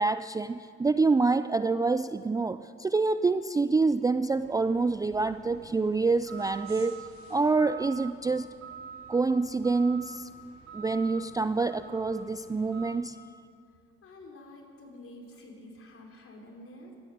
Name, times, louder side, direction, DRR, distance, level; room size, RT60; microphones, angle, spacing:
voice 1, 0.0-8.5 9.1-10.3 10.7-13.2, right 3 dB, 10° right, 13 dB, 0.4 m, -27 dB
sound 1, 4.3-13.0, right 5 dB, 65° right, 3.7 m, -47 dB
voice 2, 14.0-17.0, left 1 dB, 45° left, 1 dB, 4.1 m, -48 dB
16.5 x 12.5 x 6.7 m, 2.4 s
hypercardioid pair, 60°, 30 cm